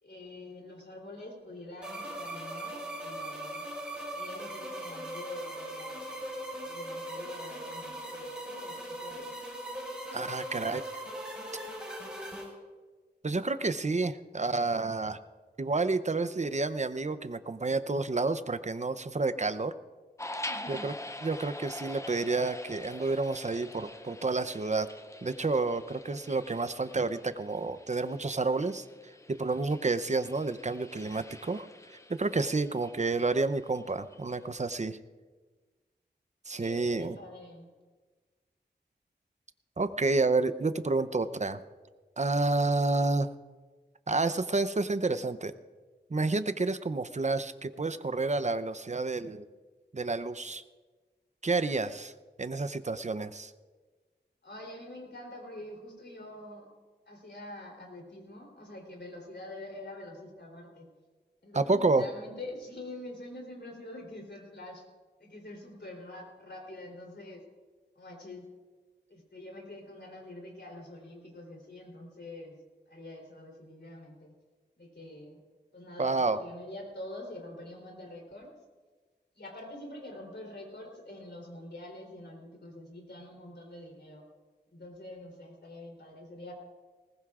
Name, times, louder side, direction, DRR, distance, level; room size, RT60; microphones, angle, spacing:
voice 1, 0.0-3.6 4.1-6.0 6.6-9.3 20.4-20.9 36.5-37.7 54.4-56.7 57.1-60.9 61.4-64.8 65.2-67.4 67.9-68.5 69.1-72.6 72.9-74.3 74.8-75.4 75.7-78.5 79.4-84.2 84.7-86.5, left 1 dB, 75° left, 0 dB, 3.5 m, -46 dB
sound 1, 1.8-12.4, right 1 dB, 5° right, 5.5 m, -40 dB
voice 2, 10.1-10.8 13.2-15.2 15.6-19.7 20.7-20.9 21.2-24.9 25.2-28.9 29.3-31.7 32.1-35.0 36.5-37.2 39.8-41.6 42.2-43.3 44.1-45.5 46.1-49.5 49.9-50.6 51.4-52.1 52.4-53.5 61.5-62.1 76.0-76.4, right 3 dB, 40° right, 12 dB, 0.6 m, -29 dB
sound 2, 20.2-34.4, left 1 dB, 15° left, 0.6 m, -45 dB
20.0 x 19.0 x 2.5 m, 1.3 s
wide cardioid pair, 75°, 18 cm